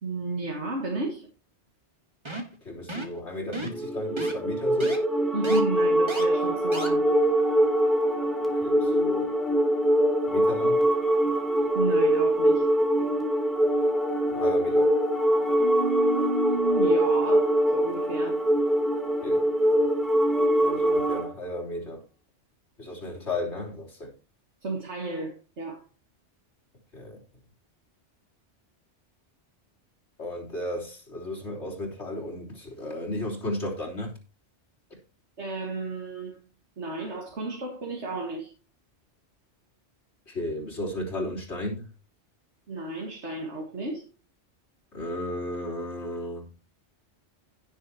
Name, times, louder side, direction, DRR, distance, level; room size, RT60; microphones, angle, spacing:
voice 1, 0.0-1.3 5.3-7.1 11.7-12.7 15.6-18.4 24.6-25.8 35.4-36.4 36.8-38.5 42.7-44.1, right 3 dB, 80° right, 2.2 m, -32 dB
sound 1, 2.3-2.6 2.9-3.2 3.5-3.8 4.2-4.3 4.8-5.0 5.4-5.6 6.1-6.2 6.7-6.9, right 1 dB, 25° right, 1.8 m, -34 dB
voice 2, 2.6-5.0 8.6-9.3 10.3-10.9 14.3-14.9 19.2-19.4 20.6-22.0 22.8-24.1 26.9-27.2 30.2-34.2 40.3-41.9 44.9-46.5, left 1 dB, 75° left, 4.0 m, -34 dB
sound 2, 3.7-21.3, equal, ahead, 2.6 m, -23 dB
16.5 x 7.2 x 2.9 m
omnidirectional pair, 1.2 m